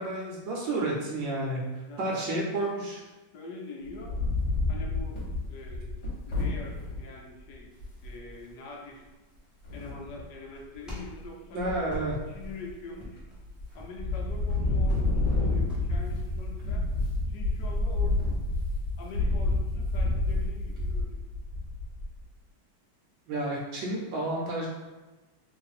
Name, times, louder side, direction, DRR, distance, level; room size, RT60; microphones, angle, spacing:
voice 1, 0.0-1.6 2.0-3.0 11.5-12.2 23.3-24.7, right 2 dB, 75° right, -2 dB, 1.3 m, -31 dB
voice 2, 1.9-2.6 3.3-4.2 4.7-7.7 8.0-9.0 9.7-13.2 13.7-16.9 17.3-18.3 19.0-21.3, left 3 dB, 70° left, 0 dB, 0.9 m, -44 dB
Wind, 3.8-7.0 7.5-7.6 7.8-8.2 9.6-10.2 10.7-11.2 11.6-12.7 13.2-13.6 13.9-22.2, left 2 dB, 40° left, 1.2 m, -29 dB
sound 1, 7.7-16.0, left 1 dB, ahead, 0.5 m, -46 dB
3.1 x 2.6 x 4.1 m, 1.2 s
omnidirectional pair, 2.2 m